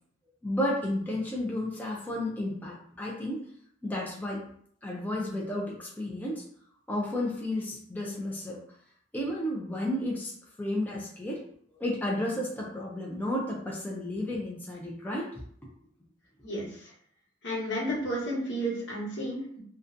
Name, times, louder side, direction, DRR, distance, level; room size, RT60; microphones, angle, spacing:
voice 1, 0.4-3.4 3.8-4.4 4.8-6.4 6.9-8.6 9.1-10.3 10.6-11.4 11.7-15.3 15.6-15.7, left 1 dB, 10° left, -4 dB, 0.3 m, -32 dB
voice 2, 17.4-19.6, equal, 75° left, -5 dB, 1.0 m, -32 dB
2.5 x 2.2 x 2.5 m, 0.63 s
head